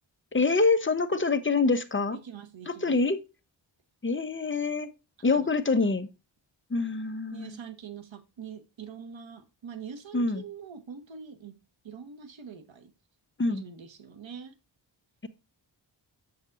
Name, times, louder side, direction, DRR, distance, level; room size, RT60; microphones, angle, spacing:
voice 1, 0.3-2.2 2.7-3.2 4.0-4.9 5.2-6.1 6.7-7.5 10.1-10.4 13.4-13.6, left 3 dB, 25° left, 0.9 m, -25 dB
voice 2, 2.1-3.0 5.3-5.6 7.3-11.6 11.8-12.9 13.5-14.5, right 7 dB, 80° right, 1.4 m, -44 dB
7.4 x 7.2 x 2.6 m
wide cardioid pair, 90°, 46 cm